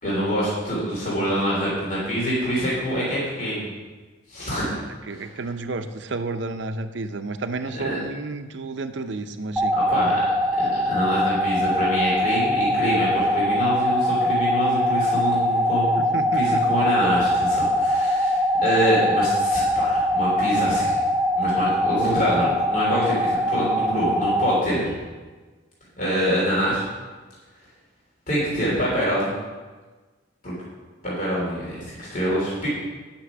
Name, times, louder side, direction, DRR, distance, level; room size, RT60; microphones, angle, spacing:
voice 1, 0.0-3.7 4.3-4.7 5.1-5.3 7.7-8.0 9.8-10.2 10.6-20.9 21.3-25.0 26.0-26.8 28.3-29.3 30.4-30.5 31.0-32.7, equal, 40° left, -7 dB, 3.3 m, -25 dB
voice 2, 5.1-9.7 16.0-16.6, right 3 dB, 65° right, 9 dB, 0.6 m, -31 dB
sound 1, 9.6-24.6, left 1 dB, ahead, 0.4 m, -22 dB
10.0 x 6.0 x 6.0 m, 1.3 s
head